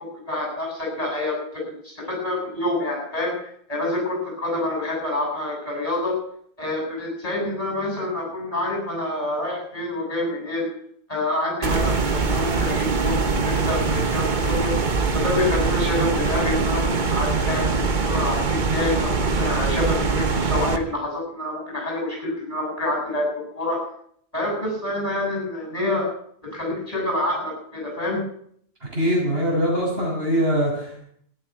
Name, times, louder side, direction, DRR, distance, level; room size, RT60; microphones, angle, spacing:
voice 1, 0.2-6.2 6.6-10.7 11.1-14.8 15.1-17.7 18.0-23.8 24.3-26.1 26.5-28.2, left 2 dB, 35° left, -1 dB, 7.9 m, -27 dB
sound 1, 11.6-20.8, right 4 dB, 50° right, 1.3 m, -23 dB
voice 2, 28.9-31.0, equal, 70° right, -3 dB, 7.0 m, -22 dB
13.5 x 11.0 x 9.7 m, 0.65 s
omnidirectional pair, 1.1 m